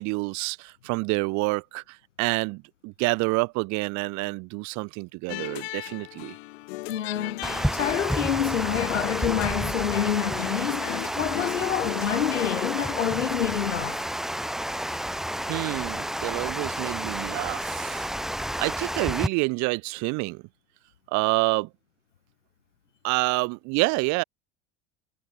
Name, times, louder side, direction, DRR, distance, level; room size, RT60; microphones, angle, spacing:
voice 1, 0.0-6.3 15.5-18.1 18.6-20.4 21.1-21.7 23.0-24.2, right 27 dB, 50° right, 1.7 m, -28 dB
sound 1, 5.3-12.7, left 23 dB, 60° left, 1.3 m, -37 dB
voice 2, 6.9-14.0, left 10 dB, 85° left, 0.6 m, -27 dB
Water, 7.4-19.3, equal, ahead, 0.7 m, -30 dB
figure-of-eight pair, 75°, 36 cm